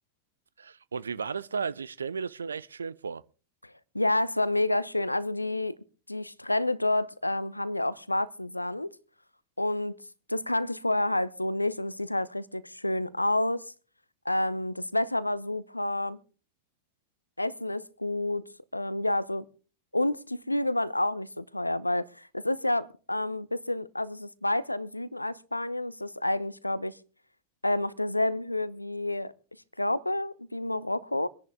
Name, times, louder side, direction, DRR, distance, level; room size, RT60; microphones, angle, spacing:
voice 1, 0.6-3.2, right 5 dB, 75° right, 0.6 m, -34 dB
voice 2, 3.6-5.8 6.1-8.9 9.6-10.0 10.3-13.7 14.2-16.2 17.4-18.4 18.7-19.5 19.9-26.9 27.6-29.3 29.8-31.3, left 1 dB, 85° left, 0.7 m, -29 dB
25.5 x 10.5 x 3.5 m
figure-of-eight pair, 90°, 0 cm